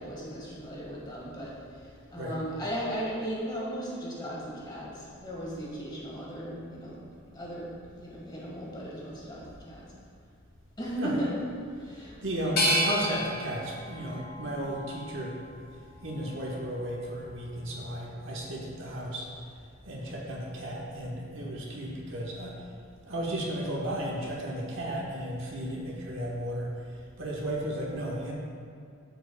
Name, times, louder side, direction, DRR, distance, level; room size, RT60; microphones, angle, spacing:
voice 1, 0.0-1.5 2.1-7.0 7.3-9.9 10.8-11.3 11.8-12.1, right 1 dB, 20° left, -5 dB, 1.6 m, -36 dB
voice 2, 12.0-15.4 16.0-19.3 19.8-22.6 23.1-26.9 27.2-28.3, right 1 dB, 65° right, -3 dB, 1.2 m, -34 dB
sound 1, 12.6-15.5 16.0-16.8, left 1 dB, 45° left, 1.5 m, -32 dB
13.0 x 4.9 x 2.3 m, 2.2 s
head